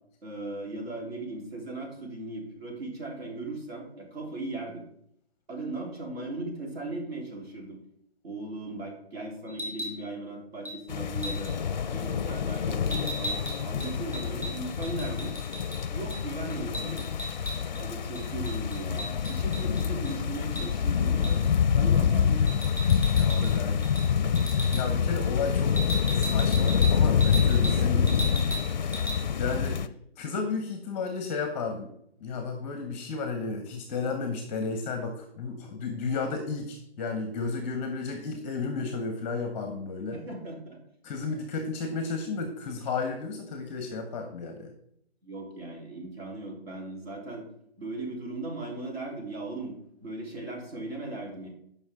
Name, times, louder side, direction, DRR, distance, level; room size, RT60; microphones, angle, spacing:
voice 1, 0.2-4.9 5.5-7.8 8.2-11.6 11.9-15.3 15.9-17.1 17.8-22.6 27.6-28.3 40.1-40.8 45.2-47.5 47.8-51.5, right 2 dB, 70° right, -1 dB, 3.7 m, -38 dB
sound 1, 9.5-10.0 10.7-10.8 11.2-11.5 12.9-15.8 16.1-16.2 16.5-17.8 18.2-20.1 20.6-20.7 21.2-21.5 22.5-23.5 23.8-24.1 24.4-24.8 25.8-27.8 28.1-28.7 28.9-29.2, equal, 5° right, 1.9 m, -36 dB
sound 2, 10.9-29.9, left 7 dB, 45° left, 0.5 m, -26 dB
voice 2, 23.1-23.8 24.1-24.3 24.7-25.8 26.1-28.2 28.8-29.0 29.4-29.8 30.2-31.9 32.2-40.2 41.0-44.7, left 4 dB, 15° left, 5 dB, 0.7 m, -33 dB
13.5 x 5.5 x 3.7 m, 0.72 s
figure-of-eight pair, 150°, 32 cm